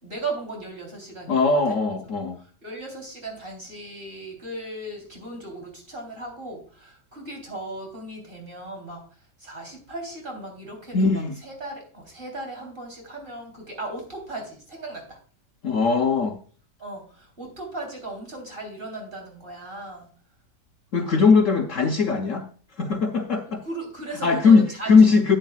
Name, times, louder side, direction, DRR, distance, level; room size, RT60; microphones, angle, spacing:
voice 1, 0.0-1.8 2.4-15.2 16.8-20.1 23.5-24.9, right 2 dB, 30° right, 1 dB, 3.6 m, -37 dB
voice 2, 1.3-2.4 10.9-11.4 15.6-16.4 20.9-22.5 22.8-23.6 24.2-25.4, left 4 dB, 55° left, 3 dB, 1.0 m, -19 dB
13.0 x 8.9 x 2.3 m, 0.43 s
omnidirectional pair, 1.8 m